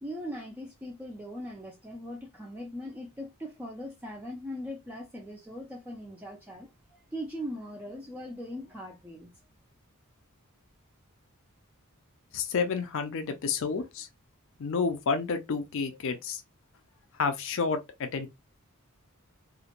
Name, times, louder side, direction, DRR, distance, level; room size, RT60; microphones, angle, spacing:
voice 1, 0.0-6.7 7.1-9.3, equal, 10° right, 0.3 m, -40 dB
voice 2, 12.3-14.1 14.6-16.4 17.2-18.3, left 5 dB, 60° left, 0.4 m, -30 dB
2.4 x 2.1 x 2.8 m
head